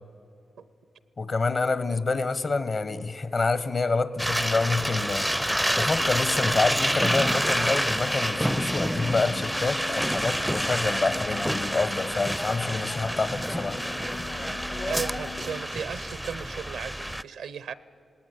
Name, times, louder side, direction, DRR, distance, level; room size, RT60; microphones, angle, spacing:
voice 1, 1.2-5.3 5.8-13.8, left 3 dB, 60° left, 1.2 m, -27 dB
sound 1, 4.2-17.2, equal, 5° right, 0.4 m, -28 dB
sound 2, 5.9-15.6, left 5 dB, 90° left, 0.7 m, -44 dB
sound 3, 7.6-15.3, left 2 dB, 35° left, 0.7 m, -39 dB
voice 2, 14.9-17.7, right 7 dB, 90° right, 0.7 m, -35 dB
19.0 x 18.0 x 9.7 m
supercardioid pair, 40°, 0 cm